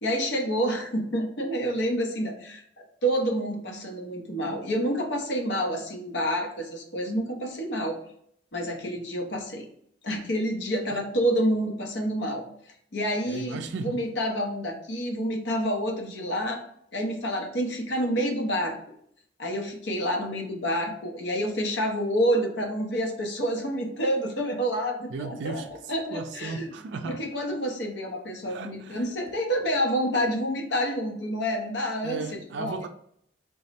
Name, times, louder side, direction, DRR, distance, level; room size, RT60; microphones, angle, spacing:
voice 1, 0.0-8.0 8.5-9.6 10.0-12.4 12.9-16.6 16.9-18.8 19.4-25.6 25.9-26.7 27.0-32.2 32.6-32.8, equal, 65° left, 2 dB, 0.8 m, -28 dB
voice 2, 13.3-14.0 25.1-25.7 26.1-27.2 28.5-29.0 32.0-32.9, right 4 dB, 65° right, 7 dB, 0.3 m, -35 dB
3.5 x 2.1 x 4.1 m, 0.67 s
head